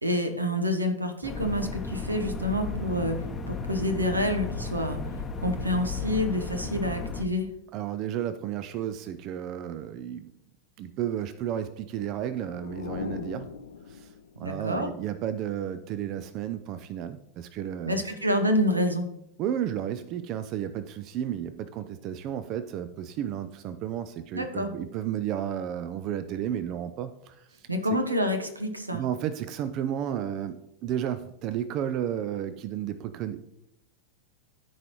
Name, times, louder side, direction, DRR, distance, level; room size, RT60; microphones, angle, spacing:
voice 1, 0.0-3.2 3.5-5.0 5.4-7.5 14.4-14.9 17.9-19.1 24.3-24.7 27.7-29.0, equal, 80° right, 7 dB, 0.9 m, -27 dB
sound 1, 1.2-7.2, left 4 dB, 20° left, 0.8 m, -34 dB
voice 2, 7.7-10.3 10.8-13.5 13.9-18.1 19.4-27.7 28.9-33.4, right 10 dB, 40° right, 12 dB, 0.4 m, -33 dB
sound 2, 11.8-14.5, left 6 dB, 70° left, 0.5 m, -40 dB
13.5 x 4.7 x 3.0 m, 0.83 s
figure-of-eight pair, 90°, 0 cm